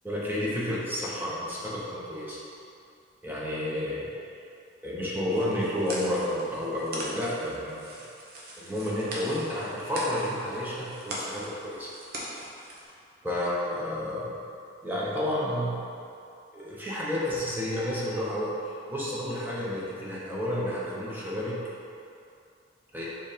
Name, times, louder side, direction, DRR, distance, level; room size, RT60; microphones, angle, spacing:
voice 1, 0.0-2.4 3.2-4.1 4.8-8.0 8.5-11.9 13.2-14.4 14.8-15.8 16.5-21.6 22.9-23.1, left 1 dB, 10° right, -7 dB, 1.0 m, -31 dB
sound 1, 5.3-12.9, right 1 dB, 50° right, 1.0 m, -40 dB
5.1 x 3.6 x 5.1 m, 2.5 s
head